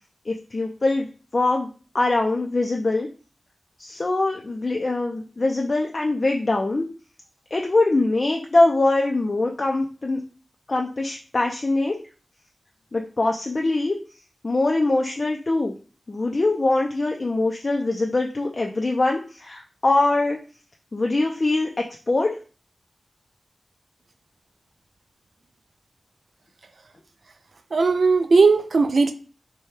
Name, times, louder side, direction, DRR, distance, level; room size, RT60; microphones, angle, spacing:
voice 1, 0.3-1.1 1.3-1.7 1.9-3.1 3.8-6.8 7.5-10.2 10.7-12.0 12.9-14.0 14.4-15.7 16.1-20.4 20.9-22.4, left 2 dB, 45° left, 2 dB, 0.4 m, -23 dB
voice 2, 27.7-29.1, right 4 dB, 70° right, 9 dB, 0.3 m, -17 dB
4.3 x 2.2 x 3.2 m, 0.38 s
wide cardioid pair, 65°, 0 cm